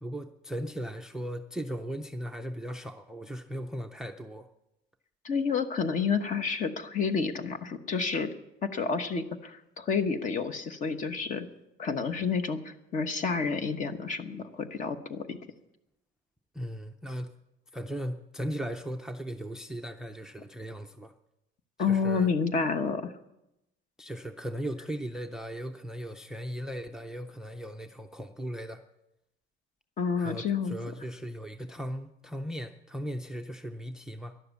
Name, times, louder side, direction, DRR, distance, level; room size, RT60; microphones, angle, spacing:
voice 1, 0.0-4.5 16.5-17.3 17.7-21.1 21.8-22.3 24.0-28.8 30.2-34.4, equal, 5° right, 8 dB, 0.4 m, -37 dB
voice 2, 5.2-8.3 8.6-11.5 11.8-15.4 21.8-23.1 30.0-30.7, left 5 dB, 40° left, 10 dB, 1.1 m, -29 dB
12.5 x 11.5 x 8.2 m, 0.89 s
cardioid pair, 175°, 20 cm